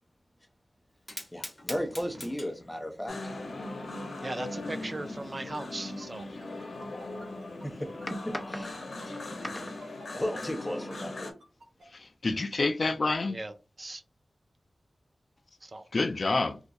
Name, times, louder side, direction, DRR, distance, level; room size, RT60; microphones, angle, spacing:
Fire, 0.9-9.8, left 1 dB, 30° left, 1.4 m, -49 dB
voice 1, 1.3-3.1 7.6-8.8 9.4-9.7 10.1-11.1, equal, 10° left, 0.7 m, -34 dB
sound 1, 3.1-11.3, left 2 dB, 80° left, 0.7 m, -39 dB
voice 2, 4.2-6.2 13.3-13.5 13.8-14.0 15.6-15.9, right 2 dB, 35° right, 0.3 m, -38 dB
sound 2, 5.6-11.9, right 3 dB, 85° right, 0.8 m, -53 dB
voice 3, 11.9-13.4 15.9-16.6, left 3 dB, 55° left, 0.3 m, -28 dB
2.5 x 2.3 x 3.9 m
wide cardioid pair, 100°, 0 cm